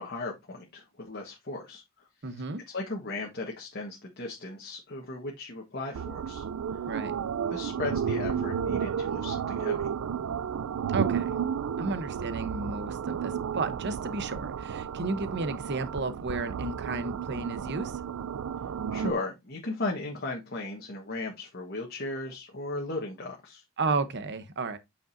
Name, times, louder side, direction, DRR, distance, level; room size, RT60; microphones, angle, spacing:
voice 1, 0.0-1.8 2.7-6.4 6.7-6.8 7.5-9.9 18.9-23.6, left 2 dB, 50° left, 1.3 m, -36 dB
voice 2, 2.2-2.6 6.9-7.1 10.9-11.4 11.8-17.9 23.8-24.8, right 3 dB, 55° right, 0.9 m, -32 dB
sound 1, 5.9-19.1, right 7 dB, 80° right, 0.4 m, -32 dB
8.6 x 5.1 x 2.6 m
head